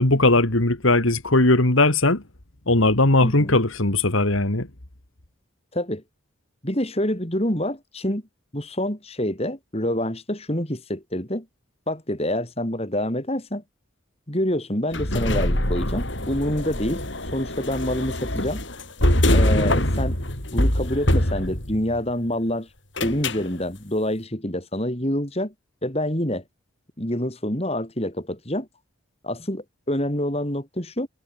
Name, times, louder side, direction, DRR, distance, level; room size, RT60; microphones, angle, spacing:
voice 1, 0.0-2.2 2.7-4.7, left 2 dB, 80° left, 2.6 m, -19 dB
voice 2, 3.2-3.6 5.7-6.0 6.6-8.2 8.5-11.5 11.9-13.6 14.3-17.0 17.3-18.6 19.3-20.2 20.5-22.7 23.0-25.5 25.8-26.4 27.0-28.7 29.2-31.1, left 1 dB, 30° left, 4.0 m, -27 dB
sound 1, 14.9-22.0 23.0-23.5, left 1 dB, 60° left, 6.7 m, -23 dB
head